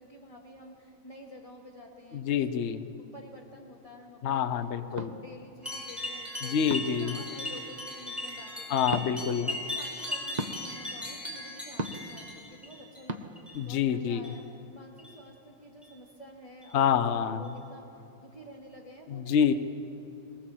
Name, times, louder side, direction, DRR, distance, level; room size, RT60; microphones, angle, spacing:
voice 1, 0.0-2.4 3.0-4.5 4.8-6.6 6.9-9.1 9.4-13.3 13.7-19.5, equal, 15° left, -1 dB, 2.5 m, -50 dB
voice 2, 2.1-2.9 4.2-5.1 6.4-7.2 8.7-9.5 13.5-14.2 16.7-17.5 19.1-19.5, left 8 dB, 60° left, 10 dB, 0.7 m, -27 dB
sound 1, 5.0-5.1 6.7-7.0 8.9-9.1 10.4-10.6 11.8-12.1 13.1-13.2, right 2 dB, 55° right, 0.4 m, -34 dB
sound 2, 5.6-13.0 13.3-13.8 14.1-14.4 15.0-15.2 15.8-15.9 16.6-16.7 17.4-17.5, left 1 dB, ahead, 4.3 m, -38 dB
21.5 x 19.0 x 7.6 m, 2.9 s
omnidirectional pair, 2.2 m